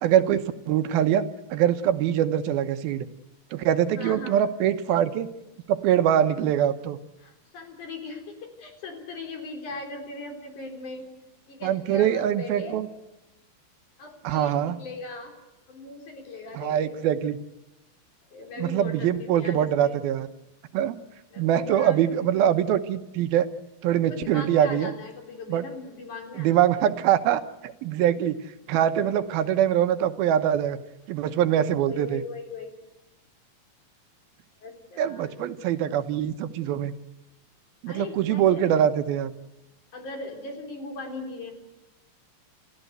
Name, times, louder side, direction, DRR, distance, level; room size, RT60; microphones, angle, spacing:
voice 1, 0.0-3.1 3.5-5.3 5.7-7.0 11.6-12.9 14.2-14.8 16.5-17.4 18.6-20.3 20.7-21.0 21.4-23.5 23.8-24.9 25.5-25.6 26.3-28.4 28.7-30.8 31.1-32.2 35.0-36.9 37.8-39.3, right 10 dB, 85° right, 10 dB, 3.0 m, -23 dB
voice 2, 3.9-4.3 7.2-11.1 11.5-12.8 14.0-15.3 15.7-16.9 18.3-20.1 21.3-22.5 24.1-26.9 31.9-32.7 34.6-35.3 37.9-38.7 39.9-41.5, left 3 dB, 55° left, 4 dB, 5.1 m, -39 dB
29.5 x 14.5 x 8.1 m, 0.99 s
omnidirectional pair, 4.2 m